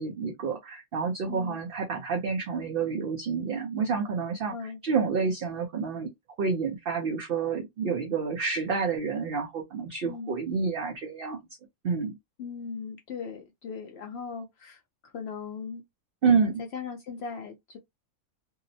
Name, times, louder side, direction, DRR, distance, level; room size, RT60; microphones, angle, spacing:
voice 1, 0.0-4.5 4.8-6.1 6.4-11.4 11.8-12.2 16.2-16.5, right 5 dB, 55° right, 0.7 m, -28 dB
voice 2, 1.3-1.6 4.5-4.8 10.0-10.4 12.4-15.8 16.3-17.8, left 5 dB, 60° left, 0.8 m, -38 dB
2.7 x 2.0 x 2.6 m
omnidirectional pair, 1.4 m